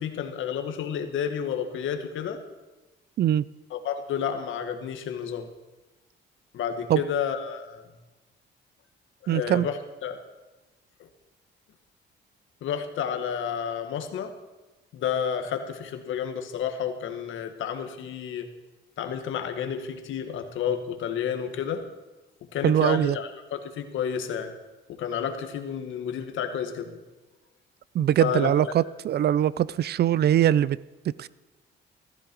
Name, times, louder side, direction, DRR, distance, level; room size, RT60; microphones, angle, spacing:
voice 1, 0.0-2.4 3.7-5.5 6.5-7.8 9.2-10.2 11.0-11.1 12.6-14.3 14.9-18.5 19.0-21.8 22.5-24.5 24.9-27.0 28.2-28.5, left 8 dB, 80° left, 1.7 m, -31 dB
voice 2, 9.3-9.7 22.6-23.2 27.9-30.8 31.2-31.3, right 11 dB, 55° right, 0.5 m, -22 dB
15.5 x 14.0 x 4.6 m
cardioid pair, 90°, 20 cm